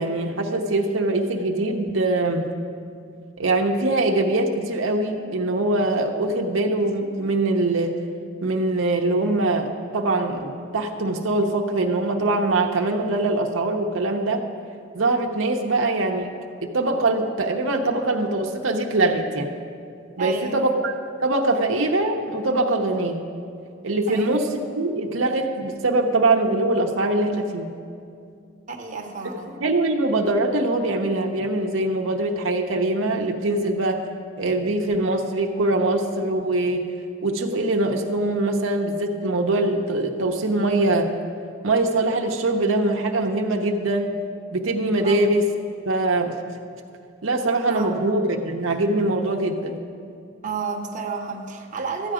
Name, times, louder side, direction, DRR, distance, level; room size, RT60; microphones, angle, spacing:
voice 1, 0.0-2.4 3.4-7.9 8.4-14.4 14.9-16.3 16.6-19.5 20.2-20.9 21.2-23.2 23.8-27.7 29.6-34.0 34.4-36.8 37.2-41.1 41.6-44.1 44.5-45.5 45.9-46.3 47.2-49.8, right 2 dB, 80° right, 2 dB, 0.8 m, -23 dB
voice 2, 20.2-20.7 24.1-24.4 28.7-29.5 45.0-45.2 47.7-48.0 50.4-52.1, right 5 dB, 40° right, 1 dB, 0.9 m, -31 dB
13.0 x 8.8 x 5.0 m, 2.4 s
head